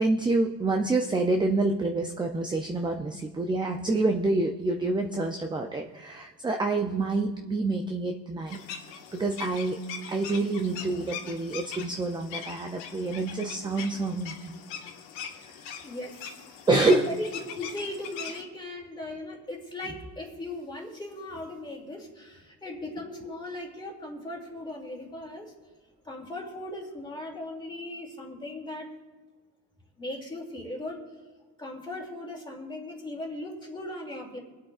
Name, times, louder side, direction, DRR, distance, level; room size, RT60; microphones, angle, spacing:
voice 1, 0.0-8.7 9.1-14.6 16.7-17.1, right 2 dB, 10° right, 4 dB, 0.4 m, -27 dB
sound 1, 8.5-18.4, left 7 dB, 85° left, 1.6 m, -41 dB
voice 2, 15.8-16.4 16.8-17.3 17.5-25.5 26.0-28.9 30.0-31.0 31.6-34.4, left 1 dB, 10° left, -1 dB, 2.5 m, -38 dB
24.5 x 8.3 x 2.4 m, 1.4 s
cardioid pair, 135°, 43 cm